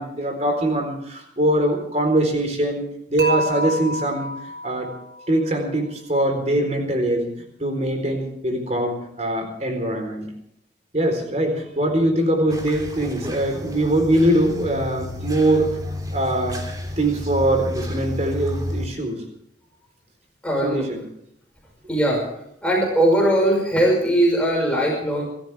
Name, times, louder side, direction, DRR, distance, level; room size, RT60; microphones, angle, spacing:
voice 1, 0.0-4.9 5.3-7.3 7.6-10.2 10.9-15.8 16.1-16.7 17.0-19.2 20.6-21.0, right 1 dB, 35° right, 5 dB, 4.1 m, -22 dB
Dishes pots and pans / Chink clink, 3.2-5.3, left 1 dB, 85° right, 5.4 m, -28 dB
sound 1, 12.5-18.9, left 1 dB, 20° right, 2.9 m, -31 dB
voice 2, 20.4-20.9 21.9-22.2 22.6-25.2, right 1 dB, 5° left, -2 dB, 5.7 m, -20 dB
28.0 x 14.0 x 3.5 m, 0.75 s
head